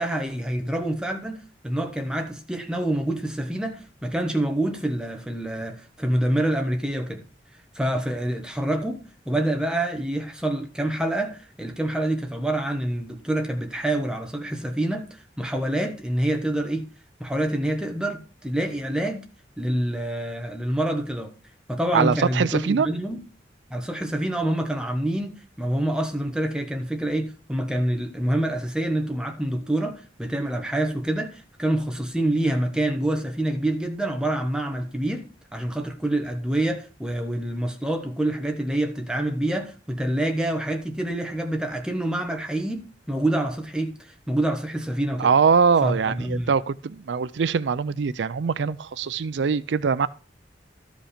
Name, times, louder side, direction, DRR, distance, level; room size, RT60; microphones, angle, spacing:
voice 1, 0.0-7.2 7.7-16.8 17.2-19.3 19.6-21.3 21.7-23.2 23.7-35.2 35.5-45.3 45.8-46.5, right 1 dB, 5° right, 1.2 m, -27 dB
voice 2, 21.9-22.9 45.2-50.1, right 5 dB, 75° right, 0.4 m, -22 dB
13.0 x 5.1 x 5.0 m
head